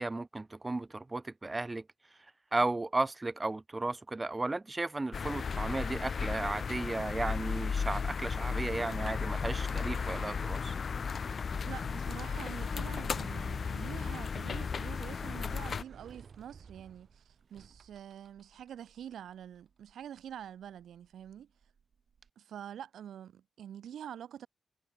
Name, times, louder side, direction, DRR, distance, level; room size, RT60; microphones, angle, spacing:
voice 1, 0.0-1.8 2.5-10.7, right 2 dB, 30° right, 0.5 m, -34 dB
sound 1, 5.1-15.8, left 5 dB, 65° left, 0.3 m, -35 dB
voice 2, 11.6-21.5 22.4-24.5, right 9 dB, 85° right, 0.7 m, -46 dB
Sliding door, 12.7-22.3, right 6 dB, 65° right, 4.7 m, -59 dB
supercardioid pair, 40°, 0 cm